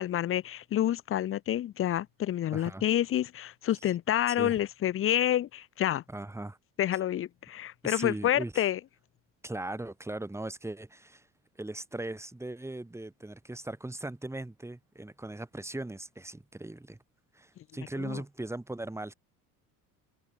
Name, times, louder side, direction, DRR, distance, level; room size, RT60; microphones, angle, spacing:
voice 1, 0.0-6.0 6.8-8.8 18.0-18.2, left 12 dB, 35° left, 0.7 m, -28 dB
voice 2, 2.5-2.8 4.4-4.6 6.1-6.6 7.8-8.6 9.4-11.3 11.6-17.0 17.3-19.1, right 2 dB, 5° right, 3.7 m, -39 dB
cardioid pair, 125°, 36 cm